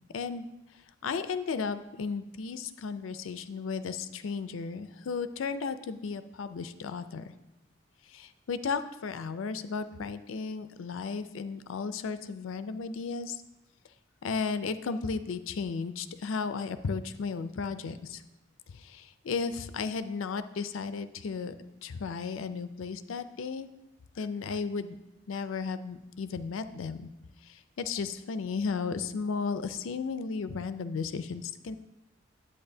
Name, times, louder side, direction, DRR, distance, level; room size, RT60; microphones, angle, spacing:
voice 1, 0.1-0.5 0.7-7.3 8.0-13.4 14.2-18.2 18.7-21.5 21.8-23.7 24.2-25.0 25.3-27.1 27.4-31.8, left 5 dB, 80° left, 11 dB, 0.4 m, -34 dB
8.7 x 8.3 x 2.7 m, 0.96 s
head